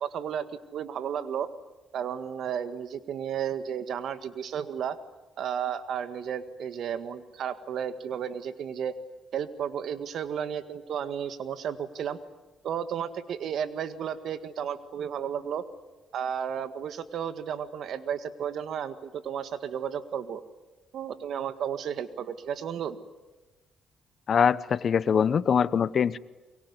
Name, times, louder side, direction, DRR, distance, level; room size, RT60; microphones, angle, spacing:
voice 1, 0.0-1.5 1.9-5.0 5.4-9.0 9.3-12.2 12.6-15.6 16.1-20.4 20.9-23.0, right 8 dB, 70° right, 12 dB, 1.8 m, -33 dB
voice 2, 24.3-26.2, left 7 dB, 50° left, 18 dB, 0.9 m, -23 dB
23.5 x 23.5 x 9.7 m, 1.2 s
cardioid pair, 90°, 0 cm